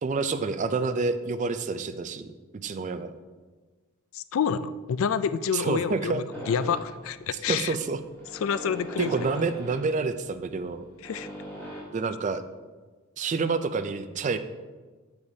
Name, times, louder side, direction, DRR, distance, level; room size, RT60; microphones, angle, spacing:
voice 1, 0.0-2.3 2.6-3.1 5.5-6.2 7.5-8.0 9.0-10.8 11.9-12.4 13.2-14.4, right 4 dB, 35° right, 10 dB, 0.3 m, -28 dB
voice 2, 4.1-7.7 8.4-9.1 11.0-11.3, left 7 dB, 65° left, 14 dB, 0.3 m, -28 dB
sound 1, 6.3-11.8, equal, 10° left, 1.9 m, -41 dB
8.0 x 6.9 x 2.7 m, 1.3 s
head